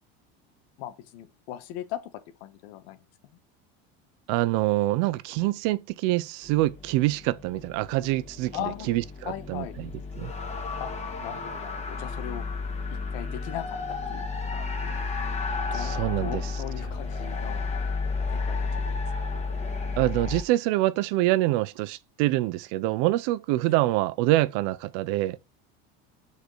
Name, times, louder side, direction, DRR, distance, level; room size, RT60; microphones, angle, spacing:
voice 1, 0.8-2.1 2.4-3.0 8.5-8.9 9.2-9.8 10.8-10.9 11.2-12.4 12.9-14.3 14.5-15.0 15.7-17.6 18.3-18.7, left 12 dB, 80° left, 1.5 m, -38 dB
voice 2, 4.3-8.6 8.9-9.9 10.2-10.3 15.7-16.4 20.0-25.4, right 17 dB, 70° right, 0.8 m, -25 dB
sound 1, 6.4-20.4, left 4 dB, 20° left, 1.9 m, -32 dB
6.7 x 4.9 x 4.8 m
supercardioid pair, 130°, 32 cm